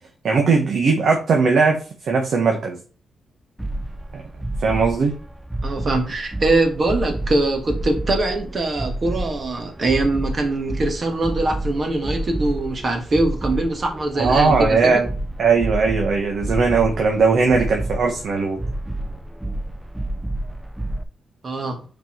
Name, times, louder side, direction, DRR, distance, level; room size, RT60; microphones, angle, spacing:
voice 1, 0.2-2.8 4.1-4.2 4.6-5.1 14.2-15.1 15.4-18.6, right 4 dB, 60° right, 1 dB, 1.3 m, -19 dB
sound 1, 3.6-21.0, right 1 dB, 5° right, 0.5 m, -29 dB
voice 2, 5.6-14.9 21.4-21.8, right 2 dB, 35° right, 4 dB, 1.6 m, -22 dB
5.4 x 4.6 x 4.6 m, 0.37 s
cardioid pair, 130°, 0 cm